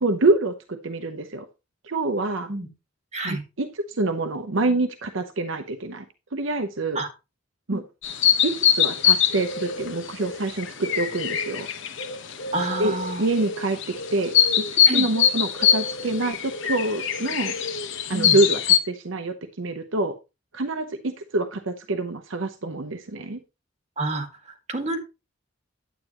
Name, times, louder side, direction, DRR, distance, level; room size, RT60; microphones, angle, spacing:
voice 1, 0.0-1.5 1.8-2.5 3.2-6.1 6.3-7.0 7.7-7.8 8.4-11.7 12.8-12.9 13.2-17.5 18.1-20.1 20.5-23.4, right 2 dB, 70° right, 8 dB, 0.8 m, -26 dB
sound 1, 8.0-18.8, left 8 dB, 65° left, 1.0 m, -23 dB
voice 2, 12.5-13.3 14.9-15.1 18.1-18.4 24.0-25.0, right 2 dB, 35° right, 3 dB, 2.0 m, -29 dB
9.5 x 9.0 x 3.0 m, 0.27 s
head